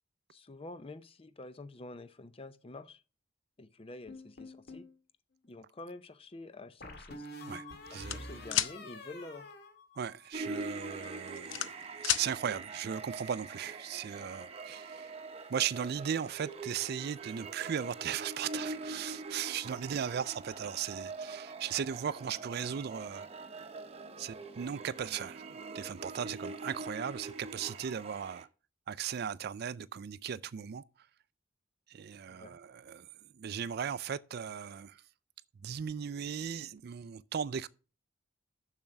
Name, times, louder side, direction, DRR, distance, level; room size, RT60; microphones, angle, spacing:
voice 1, 0.3-3.0 3.6-4.8 5.4-7.3 7.9-9.5 32.3-32.6, left 2 dB, 30° left, 0.6 m, -48 dB
sound 1, 4.1-4.9 6.8-10.3 10.6-11.1, left 1 dB, 55° left, 1.7 m, -47 dB
voice 2, 7.9-8.3 10.0-11.7 12.0-15.1 15.5-23.3 24.2-28.5 28.9-30.8 31.9-35.0 35.6-37.7, right 8 dB, 55° right, 0.4 m, -37 dB
sound 2, 8.1-8.7 10.4-10.6 11.0-12.3, left 11 dB, 85° left, 0.6 m, -31 dB
sound 3, 10.3-28.4, right 3 dB, 30° right, 0.9 m, -44 dB
7.2 x 6.6 x 5.8 m
head